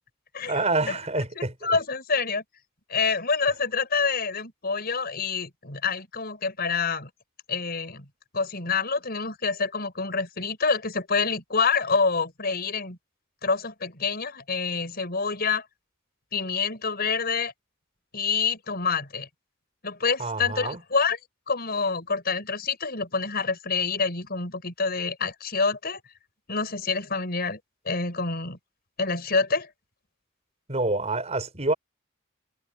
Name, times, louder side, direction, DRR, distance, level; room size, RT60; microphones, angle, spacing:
voice 1, 0.5-1.5 20.2-20.8 30.7-31.7, right 2 dB, 35° right, 5.7 m, -27 dB
voice 2, 1.4-2.4 2.9-7.1 7.5-8.0 8.3-13.0 13.4-15.7 16.3-17.5 18.1-19.3 19.8-21.2 21.5-26.0 26.5-27.6 27.9-28.6 29.0-29.7, left 4 dB, 50° left, 5.9 m, -27 dB
head